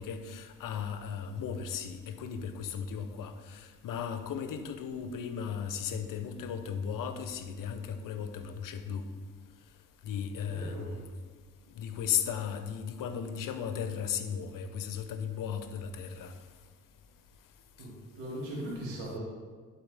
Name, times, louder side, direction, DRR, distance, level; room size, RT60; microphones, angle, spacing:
voice 1, 0.0-9.0 10.0-11.2 11.8-16.3, left 7 dB, 60° left, 0.8 m, -36 dB
voice 2, 10.4-10.9 17.8-19.2, right 1 dB, 90° right, 2.2 m, -39 dB
11.0 x 4.3 x 3.5 m
hypercardioid pair, 55°, 38 cm